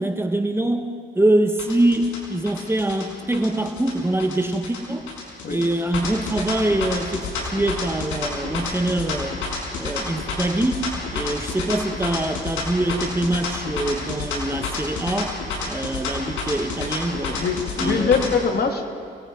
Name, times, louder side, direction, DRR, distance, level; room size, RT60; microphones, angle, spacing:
voice 1, 0.0-5.1 5.5-9.4 9.8-17.4 17.8-18.4, right 1 dB, 10° right, 5 dB, 1.6 m, -24 dB
sound 1, 1.6-18.3, left 4 dB, 80° left, 6.2 m, -30 dB
voice 2, 17.1-18.8, left 5 dB, 50° left, 4 dB, 2.5 m, -23 dB
28.5 x 19.5 x 5.3 m, 2.3 s
cardioid pair, 90°, 20 cm